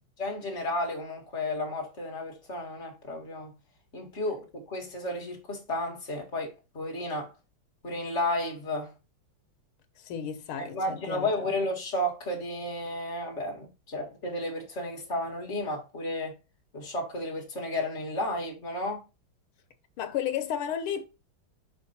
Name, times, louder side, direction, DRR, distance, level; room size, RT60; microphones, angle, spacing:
voice 1, 0.2-3.5 3.9-7.3 7.8-8.9 10.6-16.3 16.7-19.0, left 1 dB, 35° left, 2.0 m, -32 dB
voice 2, 10.0-11.5 20.0-21.1, left 9 dB, 85° left, 1.8 m, -33 dB
5.8 x 4.7 x 4.2 m
omnidirectional pair, 2.3 m